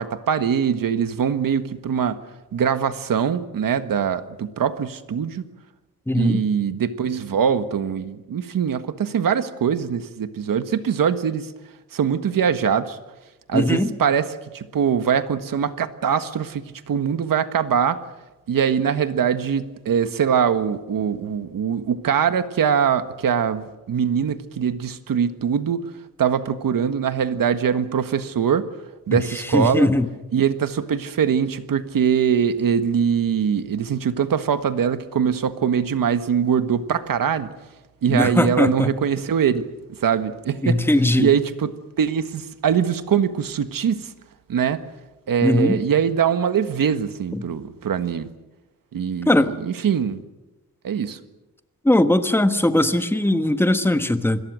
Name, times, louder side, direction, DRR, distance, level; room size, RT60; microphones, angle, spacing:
voice 1, 0.0-2.2 2.5-5.5 6.1-11.5 11.9-13.0 13.5-18.0 18.5-25.8 26.2-28.7 29.1-29.9 30.3-37.5 38.0-39.7 40.0-40.8 41.2-44.1 44.5-44.9 45.3-48.3 48.9-50.2 50.8-51.2, right 7 dB, 70° right, 11 dB, 1.5 m, -22 dB
voice 2, 6.1-6.4 13.5-13.9 29.1-29.2 29.5-30.1 38.1-38.9 40.6-41.3 45.4-45.8 47.3-47.4 49.3-49.5 51.8-54.4, left 1 dB, 5° left, 9 dB, 1.3 m, -19 dB
27.5 x 21.5 x 6.4 m, 1.1 s
wide cardioid pair, 135°, 35 cm